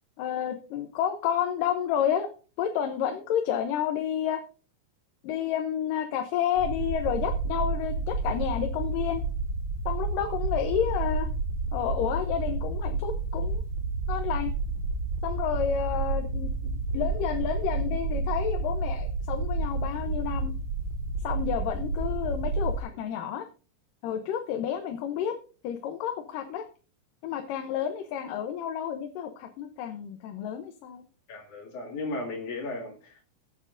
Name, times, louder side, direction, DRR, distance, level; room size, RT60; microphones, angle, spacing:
voice 1, 0.2-2.3 2.6-4.4 5.2-9.2 9.9-11.3 11.7-13.6 14.1-14.5 15.2-20.5 21.2-23.5 24.0-25.3 25.6-26.7 27.2-31.0, left 9 dB, 85° left, 6 dB, 2.5 m, -30 dB
sound 1, 6.6-22.8, right 3 dB, 85° right, 3.5 m, -30 dB
voice 2, 31.3-33.2, left 2 dB, 65° left, -2 dB, 3.3 m, -35 dB
20.5 x 8.9 x 2.6 m, 0.36 s
omnidirectional pair, 3.8 m